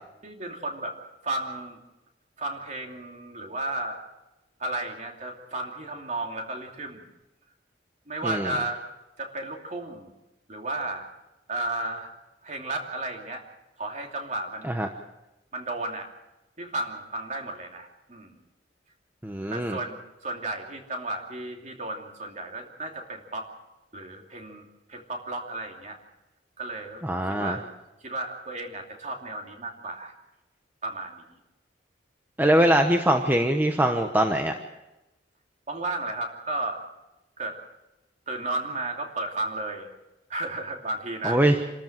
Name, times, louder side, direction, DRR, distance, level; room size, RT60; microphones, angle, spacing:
voice 1, 0.2-1.0 1.2-1.8 2.4-4.0 4.6-7.0 8.1-8.8 9.2-10.1 10.5-11.1 11.5-12.1 12.4-13.5 13.8-14.8 15.5-16.1 16.6-18.3 19.5-23.5 23.9-26.0 26.6-27.0 27.3-27.7 28.0-30.1 30.8-31.2 35.7-36.8 37.4-37.6 38.3-39.9 40.3-41.4, right 2 dB, 40° right, 2 dB, 2.8 m, -33 dB
voice 2, 19.2-19.8 27.0-27.6 32.4-34.5 41.2-41.6, right 1 dB, 10° right, 4 dB, 1.0 m, -22 dB
27.0 x 13.5 x 7.6 m, 0.98 s
head